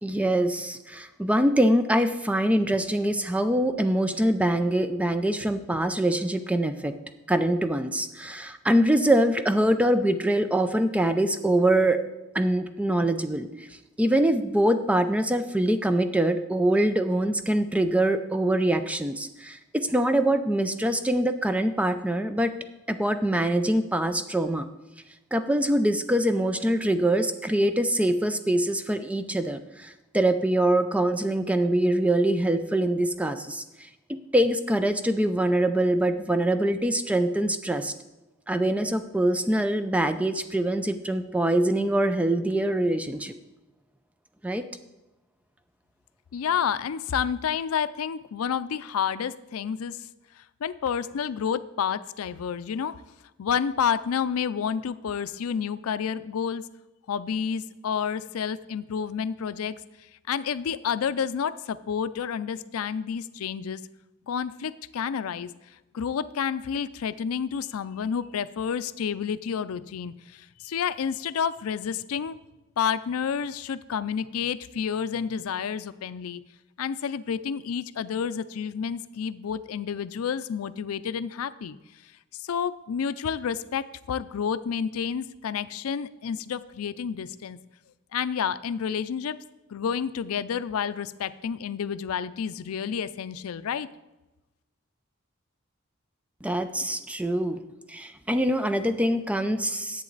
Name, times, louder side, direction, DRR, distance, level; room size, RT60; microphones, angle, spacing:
voice 1, 0.0-6.9 7.3-12.0 12.3-13.7 14.0-22.5 22.9-24.7 25.3-33.6 34.3-37.9 38.5-43.3 44.4-44.7 96.4-97.6 97.9-100.0, right 1 dB, 5° right, 10 dB, 0.4 m, -24 dB
voice 2, 46.3-50.0 50.6-52.9 53.4-56.6 57.1-59.8 60.3-63.8 64.3-65.5 65.9-72.4 72.8-76.4 76.8-81.8 82.4-87.6 88.1-89.4 89.7-93.9, left 7 dB, 90° left, 14 dB, 0.4 m, -29 dB
10.5 x 8.0 x 3.9 m, 1.0 s
head